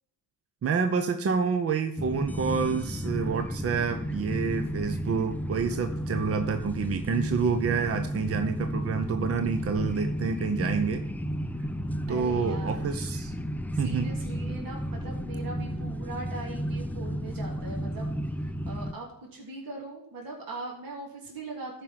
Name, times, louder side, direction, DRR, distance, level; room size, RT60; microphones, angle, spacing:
voice 1, 0.6-11.1 12.1-13.3 13.8-14.1, right 5 dB, 35° right, 8 dB, 0.8 m, -28 dB
sound 1, 2.0-18.9, equal, 5° left, 0.5 m, -33 dB
voice 2, 12.1-12.9 13.7-18.1 18.7-21.8, right 2 dB, 60° right, -1 dB, 3.0 m, -40 dB
12.5 x 5.2 x 5.8 m, 0.73 s
cardioid pair, 75°, 38 cm